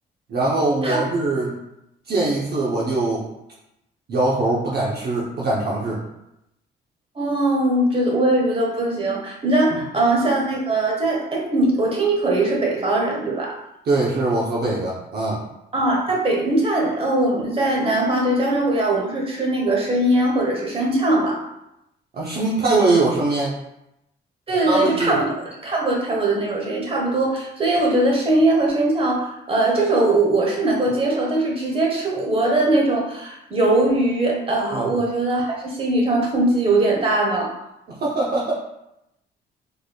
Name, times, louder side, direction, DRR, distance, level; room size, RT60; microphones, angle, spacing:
voice 1, 0.3-1.5 2.1-3.2 4.1-6.0 13.9-15.4 22.1-23.5 24.6-25.2 34.7-34.9 37.9-38.5, right 2 dB, 55° right, -5 dB, 0.8 m, -22 dB
voice 2, 7.1-13.6 15.7-21.4 24.5-25.3 25.6-37.5, right 2 dB, 30° right, -1 dB, 1.1 m, -20 dB
3.9 x 3.3 x 2.3 m, 0.86 s
cardioid pair, 90°, 20 cm